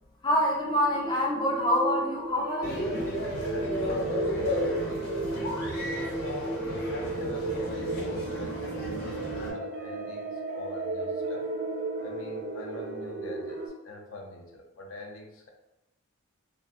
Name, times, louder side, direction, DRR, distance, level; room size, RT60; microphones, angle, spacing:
voice 1, 0.2-3.1, equal, 20° left, -3 dB, 0.3 m, -26 dB
sound 1, 0.6-13.7, right 2 dB, 50° right, 0.5 m, -34 dB
sound 2, 2.6-9.5, left 1 dB, 45° left, 0.8 m, -34 dB
voice 2, 3.5-5.2 6.1-11.4 12.0-15.5, left 1 dB, 70° left, 2 dB, 0.5 m, -43 dB
3.3 x 2.1 x 2.4 m, 0.92 s
head